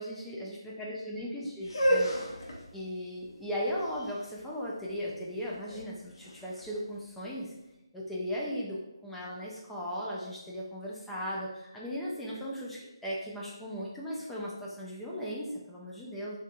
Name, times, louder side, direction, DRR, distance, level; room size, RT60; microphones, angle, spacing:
voice 1, 0.0-2.2 2.7-7.5 7.9-16.4, equal, 5° left, -6 dB, 0.3 m, -37 dB
sound 1, 1.6-7.5, equal, 60° left, 0.7 m, -33 dB
3.3 x 2.7 x 2.4 m, 0.92 s
figure-of-eight pair, 160°, 3 cm